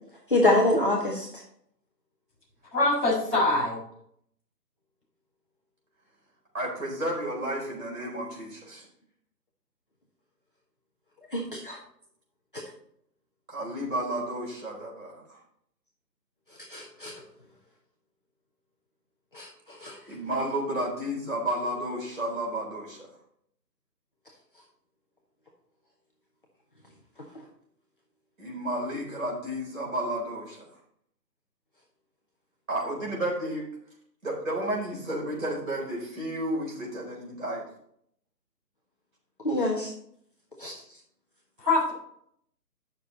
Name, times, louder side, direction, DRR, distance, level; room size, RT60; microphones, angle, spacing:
voice 1, 0.3-1.3 11.3-11.8 16.7-17.1 19.3-19.5 19.8-20.0 39.4-39.9 40.6-40.7, left 2 dB, 30° left, -3 dB, 1.5 m, -25 dB
voice 2, 2.7-3.8 41.6-41.9, left 2 dB, 5° right, -13 dB, 4.4 m, -23 dB
voice 3, 6.5-8.9 13.5-15.4 20.1-23.1 28.4-30.6 32.7-33.7 34.2-37.6, right 1 dB, 50° right, -3 dB, 4.3 m, -32 dB
10.5 x 6.6 x 4.1 m, 0.67 s
figure-of-eight pair, 180°, 50 cm